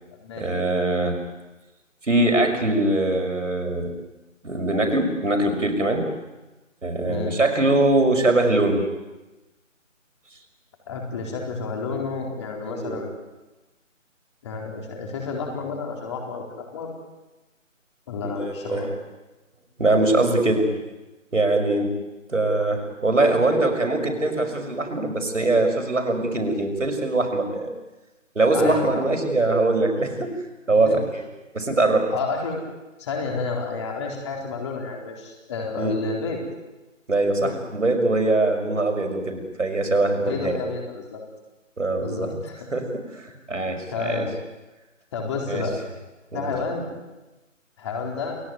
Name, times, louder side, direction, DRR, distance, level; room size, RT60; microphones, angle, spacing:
voice 1, 0.4-1.2 2.0-3.9 4.4-6.1 6.8-8.9 12.7-13.0 18.2-18.9 19.8-20.7 21.3-21.9 22.3-27.7 28.3-30.4 30.7-31.2 31.5-32.1 35.8-36.0 37.1-40.6 41.8-42.3 42.7-44.3 45.5-45.7 46.3-46.5, right 2 dB, 70° right, 4 dB, 6.0 m, -22 dB
voice 2, 7.0-7.4 10.9-13.1 14.4-16.9 18.1-18.9 28.5-29.1 30.1-30.2 30.8-31.0 32.1-32.6 33.0-36.4 37.3-37.6 40.2-41.2 42.0-42.7 43.6-44.3 45.1-45.8 46.3-46.9 47.8-48.4, left 4 dB, 20° left, 1 dB, 4.2 m, -30 dB
29.0 x 18.5 x 9.4 m, 1.1 s
figure-of-eight pair, 155°, 39 cm